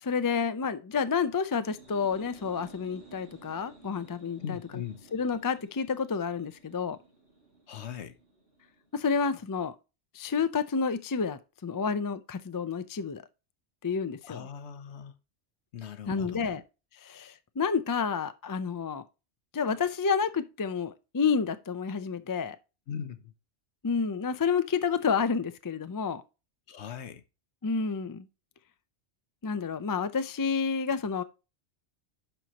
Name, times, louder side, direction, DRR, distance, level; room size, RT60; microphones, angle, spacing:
voice 1, 0.0-4.6 5.1-7.0 8.9-9.7 10.1-13.2 13.8-14.5 16.1-16.6 17.0-19.0 19.5-22.6 23.8-26.2 27.6-28.3 29.4-31.2, left 5 dB, 35° left, 0.3 m, -29 dB
sound 1, 1.5-9.1, right 3 dB, 85° right, 5.7 m, -55 dB
voice 2, 4.4-5.0 7.7-8.2 14.2-15.1 15.7-16.5 22.9-23.3 26.7-27.2, left 8 dB, 70° left, 1.1 m, -40 dB
11.5 x 4.6 x 2.9 m
omnidirectional pair, 1.2 m